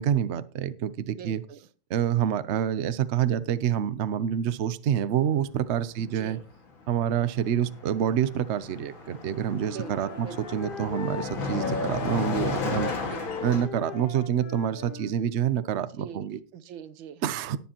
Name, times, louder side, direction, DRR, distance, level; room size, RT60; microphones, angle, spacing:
voice 1, 0.0-1.4 1.9-6.4 6.9-10.3 10.5-12.9 13.4-16.4 17.2-17.6, right 9 dB, 70° right, 14 dB, 0.6 m, -27 dB
voice 2, 1.1-1.6 6.1-6.4 9.7-10.4 13.0-13.6 15.9-16.3 16.5-17.2, right 8 dB, 85° right, 13 dB, 1.6 m, -42 dB
Car passing by, 6.2-6.4 6.7-13.7, left 4 dB, 90° left, 2.8 m, -34 dB
Wind instrument woodwind instrument, 9.6-15.1, left 5 dB, 60° left, 0.5 m, -37 dB
18.5 x 7.4 x 3.0 m, 0.38 s
omnidirectional pair, 2.1 m